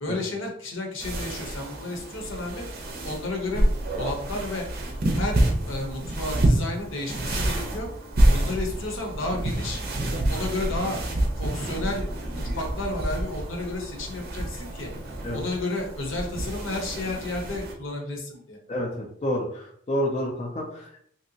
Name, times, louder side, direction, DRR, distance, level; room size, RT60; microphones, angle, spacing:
voice 1, 0.0-2.6 3.0-3.7 4.0-4.7 5.1-7.9 8.3-9.8 10.3-11.0 11.4-14.9 15.3-18.6, left 2 dB, 65° left, 1 dB, 0.8 m, -32 dB
sound 1, 1.0-17.7, right 1 dB, 50° right, 0.6 m, -28 dB
voice 2, 18.7-21.0, equal, 30° left, -2 dB, 0.4 m, -29 dB
3.2 x 2.7 x 2.7 m, 0.64 s
head